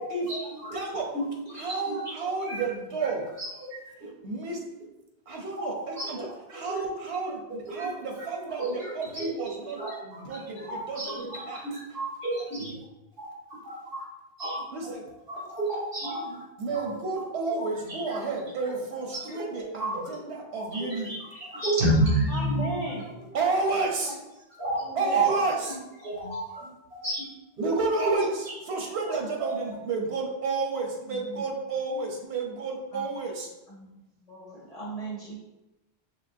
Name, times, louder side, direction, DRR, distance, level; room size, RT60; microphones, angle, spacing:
voice 1, 0.0-2.1 2.4-2.6 3.0-3.1 3.4-4.1 5.3-6.1 6.5-6.8 7.7-7.9 8.2-8.3 8.6-12.8 13.2-14.0 14.4-14.9 15.3-16.4 16.7-17.0 17.5-18.2 18.7-18.8 19.1-20.0 20.5-23.0 23.6-23.7 24.6-24.8 25.3-27.3 27.6-28.6 29.0-29.1 29.4-29.5, right 1 dB, 60° right, -6 dB, 1.6 m, -32 dB
voice 2, 0.7-1.1 1.6-3.3 4.2-4.6 5.3-11.2 11.5-11.6 14.7-15.0 16.6-21.1 23.3-24.1 25.0-25.7 27.6-28.3 28.7-33.5, right 4 dB, 90° right, 0 dB, 1.0 m, -31 dB
voice 3, 22.3-23.3 24.7-25.6 31.0-31.4 32.9-33.1 33.7-33.9 34.3-35.3, right 1 dB, 35° left, -5 dB, 1.4 m, -36 dB
5.7 x 2.9 x 2.5 m, 0.97 s
omnidirectional pair, 1.1 m